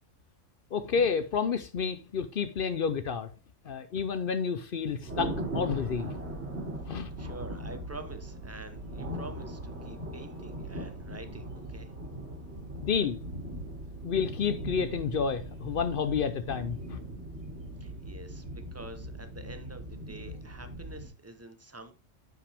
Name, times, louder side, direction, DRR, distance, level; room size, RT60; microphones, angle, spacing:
voice 1, 0.7-3.3 3.6-6.2 6.8-7.1 12.8-13.2 14.0-17.0, left 6 dB, 55° left, 0.7 m, -30 dB
Thunder, 5.0-21.1, right 1 dB, 55° right, 3.0 m, -39 dB
voice 2, 7.2-11.9 17.8-21.9, right 2 dB, 15° right, 0.7 m, -47 dB
9.4 x 5.8 x 3.4 m
omnidirectional pair, 1.3 m